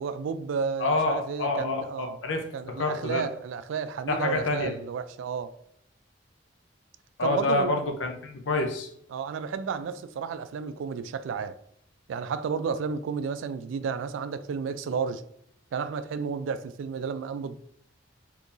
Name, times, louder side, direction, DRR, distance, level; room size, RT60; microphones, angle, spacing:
voice 1, 0.0-2.2 2.5-5.6 7.2-7.8 9.1-11.6 12.1-15.2 15.7-17.6, right 6 dB, 90° right, 0.3 m, -32 dB
voice 2, 0.8-3.3 4.1-4.8 7.2-8.9, left 3 dB, 80° left, 0.6 m, -28 dB
3.7 x 2.8 x 2.5 m
head